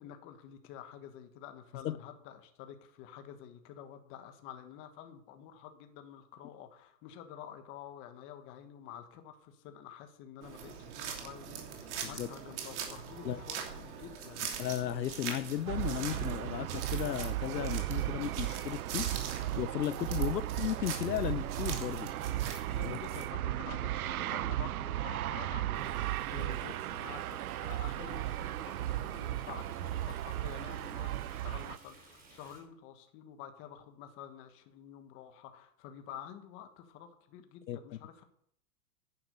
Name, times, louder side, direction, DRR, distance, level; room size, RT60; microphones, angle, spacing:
voice 1, 0.0-14.5 20.2-20.4 22.6-38.2, left 9 dB, 25° left, 1.4 m, -49 dB
sound 1, 10.4-23.3, right 7 dB, 45° right, 3.0 m, -42 dB
voice 2, 14.6-19.1 19.6-22.1 22.8-23.0 37.7-37.8, left 12 dB, 85° left, 0.8 m, -35 dB
sound 2, 15.7-31.8, right 14 dB, 60° right, 0.6 m, -36 dB
Stream, 25.7-32.6, right 3 dB, 15° right, 3.4 m, -57 dB
10.0 x 10.0 x 6.7 m
hypercardioid pair, 155°, 50 cm